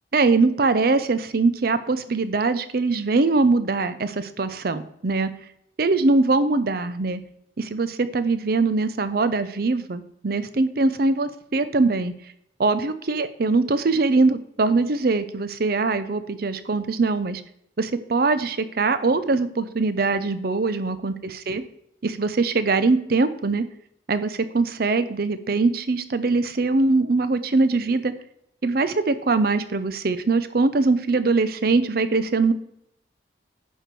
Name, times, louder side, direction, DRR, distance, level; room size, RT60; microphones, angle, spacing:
voice 1, 0.1-5.3 5.8-7.2 7.6-12.1 12.6-17.4 17.8-21.6 22.0-23.7 24.1-28.1 28.6-32.5, right 3 dB, 50° right, 12 dB, 0.6 m, -22 dB
10.0 x 4.6 x 4.6 m, 0.73 s
head